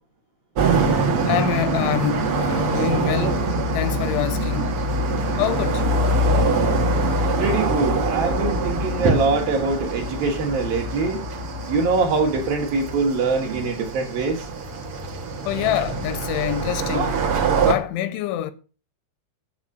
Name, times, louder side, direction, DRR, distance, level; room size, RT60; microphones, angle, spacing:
sound 1, 0.5-17.7, right 2 dB, 90° right, 1.2 m, -24 dB
voice 1, 1.2-3.4 3.7-4.7 5.4-6.0 15.5-17.3 17.6-18.5, left 12 dB, 80° left, 3.0 m, -26 dB
voice 2, 7.4-11.2 11.7-14.5, right 3 dB, 65° right, 2.6 m, -23 dB
9.7 x 7.2 x 6.4 m
omnidirectional pair, 5.5 m